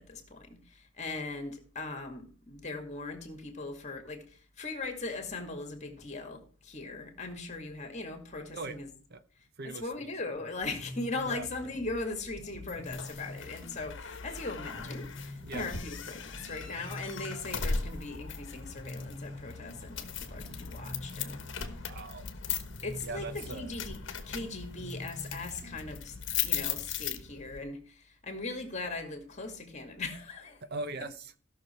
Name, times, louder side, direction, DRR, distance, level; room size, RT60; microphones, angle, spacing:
voice 1, 0.0-8.9 9.6-21.4 22.8-24.0 24.3-26.2 26.4-30.6, left 3 dB, 35° left, 2.1 m, -39 dB
voice 2, 9.6-10.3 11.2-11.4 15.4-15.7 17.5-17.6 21.9-22.3 23.0-23.7 30.6-31.4, right 3 dB, 50° right, 0.8 m, -40 dB
sound 1, 10.6-26.6, left 2 dB, 35° right, 3.1 m, -46 dB
sound 2, 12.7-27.6, left 6 dB, 60° left, 1.2 m, -38 dB
16.0 x 6.4 x 4.4 m
head